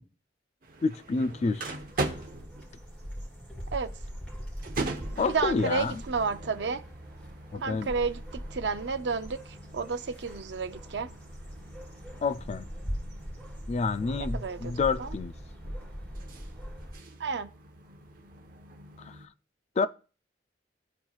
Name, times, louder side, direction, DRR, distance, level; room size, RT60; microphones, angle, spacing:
sound 1, 0.6-19.3, right 2 dB, 50° right, 0.9 m, -42 dB
voice 1, 0.8-1.8 5.2-6.0 7.5-7.9 12.2-12.7 13.7-15.3 19.0-19.3 19.8-19.9, left 4 dB, 40° left, 0.3 m, -29 dB
sound 2, 0.8-16.9, equal, 10° left, 3.0 m, -41 dB
voice 2, 5.3-6.8 7.6-11.1 14.2-14.7 15.0-15.1 17.2-17.5, right 5 dB, 70° right, 0.6 m, -31 dB
13.0 x 4.5 x 2.4 m
head